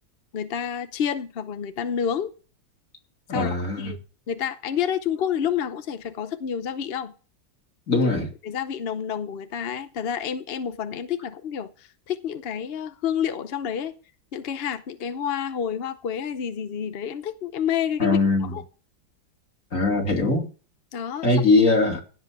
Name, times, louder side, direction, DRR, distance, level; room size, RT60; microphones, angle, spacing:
voice 1, 0.3-2.3 3.3-4.0 4.3-7.1 8.0-8.1 8.4-13.9 14.3-18.6 20.9-21.3, left 8 dB, 65° left, 0.5 m, -29 dB
voice 2, 3.3-3.9 7.9-8.3 18.0-18.5 19.7-20.5 21.2-22.0, left 3 dB, 40° left, 3.0 m, -21 dB
16.0 x 5.4 x 7.4 m
omnidirectional pair, 2.1 m